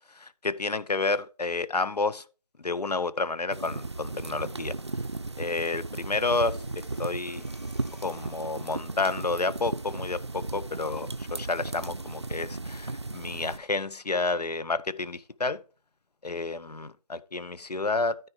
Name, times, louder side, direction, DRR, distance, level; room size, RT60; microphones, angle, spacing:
voice 1, 0.1-2.2 2.6-4.7 5.4-7.4 8.0-15.6 16.2-18.3, left 3 dB, 75° left, 0.8 m, -30 dB
sound 1, 3.5-13.6, right 2 dB, 40° right, 0.5 m, -36 dB
Breathing, 6.3-8.8, equal, 25° left, 1.0 m, -54 dB
13.0 x 4.6 x 4.8 m
figure-of-eight pair, 175°, 21 cm